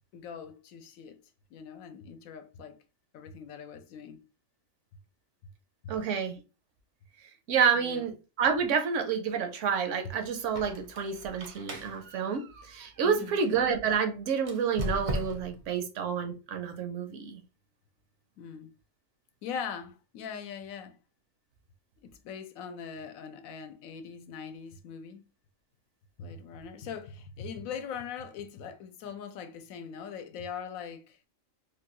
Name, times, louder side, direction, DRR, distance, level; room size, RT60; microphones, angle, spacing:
voice 1, 0.1-1.2 1.5-2.8 3.1-4.2 5.8-5.9 7.7-8.0 13.0-13.4 18.4-18.7 19.4-21.0 22.0-25.3 26.2-31.3, left 6 dB, 85° left, 1.0 m, -41 dB
voice 2, 5.9-6.3 7.5-17.4, right 6 dB, 70° right, 0.9 m, -29 dB
Squeak, 10.4-13.6 14.4-15.7, right 1 dB, 50° right, 0.6 m, -38 dB
3.3 x 2.2 x 2.9 m
omnidirectional pair, 1.4 m